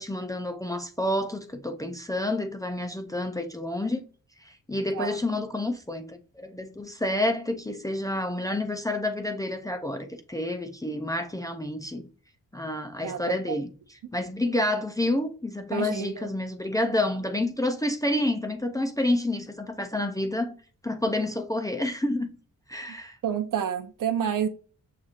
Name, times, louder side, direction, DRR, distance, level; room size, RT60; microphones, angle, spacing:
voice 1, 0.0-4.0 4.4-12.1 12.5-20.5 20.8-22.3 22.7-23.2, left 1 dB, 10° left, 0.4 m, -29 dB
voice 2, 13.0-13.3 15.7-16.3 23.2-24.5, right 8 dB, 70° right, 0.6 m, -29 dB
6.5 x 2.9 x 2.4 m
wide cardioid pair, 165°, 33 cm